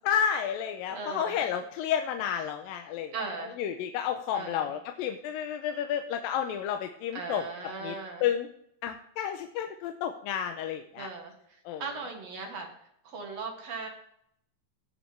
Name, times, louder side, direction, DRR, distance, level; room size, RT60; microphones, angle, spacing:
voice 1, 0.1-3.1 3.6-7.5 7.8-7.9 8.2-8.5 8.8-11.1 11.7-11.8, left 9 dB, 85° left, 5 dB, 2.4 m, -31 dB
voice 2, 0.9-1.4 3.1-3.5 4.3-4.7 7.1-8.2 11.0-12.7 13.0-13.9, right 4 dB, 55° right, 2 dB, 2.4 m, -38 dB
17.5 x 6.4 x 3.4 m, 0.70 s
omnidirectional pair, 4.1 m